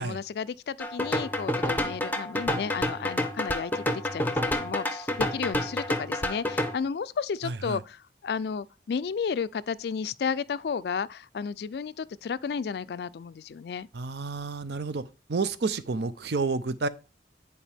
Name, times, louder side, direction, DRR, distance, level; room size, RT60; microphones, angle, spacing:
voice 1, 0.0-13.9, left 6 dB, 60° left, 0.3 m, -33 dB
sound 1, 0.8-6.7, left 1 dB, 10° left, 0.6 m, -29 dB
voice 2, 7.4-7.8 13.9-15.0 15.3-16.9, right 4 dB, 65° right, 0.6 m, -30 dB
10.0 x 4.7 x 3.4 m
head